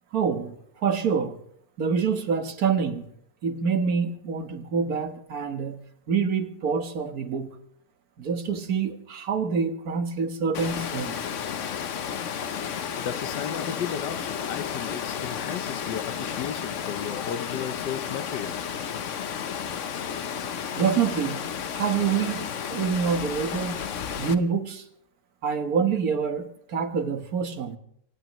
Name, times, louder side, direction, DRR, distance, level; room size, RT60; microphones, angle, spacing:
voice 1, 0.1-0.5 0.8-1.4 1.8-3.0 3.4-5.8 6.1-7.5 8.2-11.2 20.7-21.4 21.7-23.8 24.2-24.8 25.4-27.8, right 6 dB, 60° right, 1.7 m, -26 dB
Water, 10.5-24.3, left 7 dB, 55° left, 1.0 m, -32 dB
voice 2, 13.0-18.6, left 9 dB, 75° left, 1.4 m, -34 dB
25.0 x 17.5 x 3.1 m
omnidirectional pair, 1.9 m